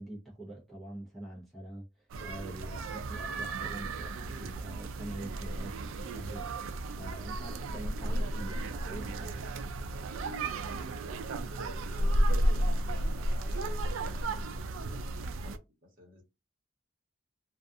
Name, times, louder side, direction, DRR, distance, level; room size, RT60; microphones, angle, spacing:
voice 1, 0.0-9.4, right 1 dB, ahead, 0.7 m, -45 dB
sound 1, 2.1-15.6, right 1 dB, 90° right, 0.4 m, -33 dB
voice 2, 10.7-15.1 15.4-16.2, left 1 dB, 45° right, 1.1 m, -56 dB
2.4 x 2.3 x 2.6 m
head